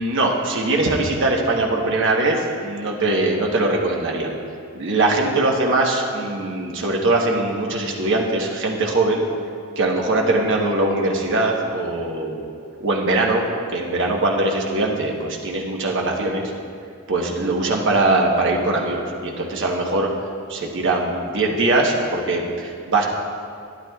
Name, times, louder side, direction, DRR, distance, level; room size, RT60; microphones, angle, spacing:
voice 1, 0.0-4.3 4.7-9.2 9.8-12.4 12.8-13.4 13.7-16.4 17.1-20.1 20.5-23.0, right 2 dB, 55° right, 0 dB, 1.1 m, -21 dB
12.0 x 10.5 x 2.3 m, 2.4 s
head